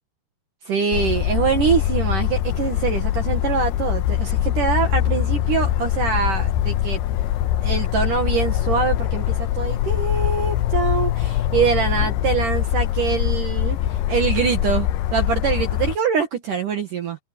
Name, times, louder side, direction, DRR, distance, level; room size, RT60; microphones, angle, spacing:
voice 1, 0.7-7.0 7.6-9.2 9.5-17.2, right 6 dB, 60° right, 2.6 m, -24 dB
sound 1, 0.9-16.0, left 12 dB, 80° left, 2.5 m, -23 dB
omnidirectional pair, 5.4 m